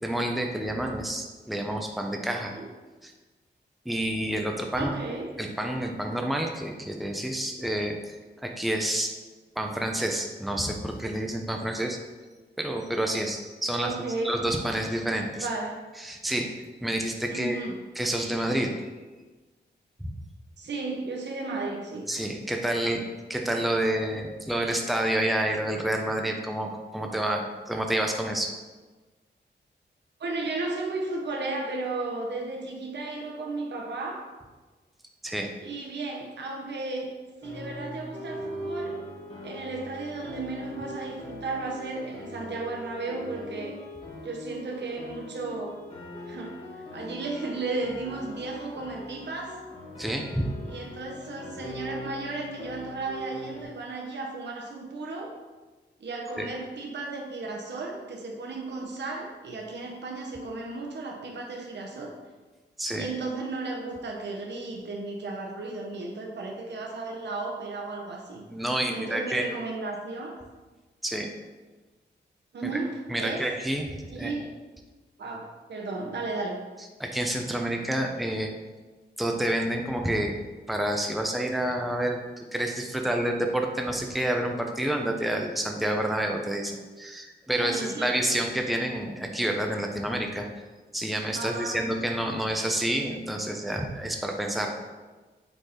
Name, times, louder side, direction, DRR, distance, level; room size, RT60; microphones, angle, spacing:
voice 1, 0.0-2.5 3.0-3.1 3.8-4.9 5.4-9.1 9.6-12.0 12.6-13.9 14.2-15.5 16.0-17.7 17.9-18.9 20.0-20.1 22.1-28.5 35.2-35.5 50.0-50.5 56.4-56.5 62.8-63.1 68.5-69.5 71.0-71.3 72.6-72.7 73.1-73.9 74.1-74.3 77.0-78.5 79.2-80.3 80.7-90.5 90.9-94.7, right 1 dB, ahead, 2 dB, 0.8 m, -29 dB
voice 2, 4.8-5.3 13.8-14.4 15.4-15.8 17.3-17.8 20.6-22.1 30.2-34.2 35.6-37.1 37.4-38.9 39.4-43.8 44.2-45.8 46.3-49.6 50.7-55.3 56.0-62.1 62.9-68.5 68.9-70.4 72.5-73.5 74.1-74.5 75.2-76.6 87.6-88.2 91.3-91.8, right 3 dB, 70° right, 0 dB, 1.0 m, -34 dB
sound 1, 37.4-53.6, left 1 dB, 30° left, 2.1 m, -41 dB
8.0 x 4.2 x 4.3 m, 1.3 s
wide cardioid pair, 100°, 19 cm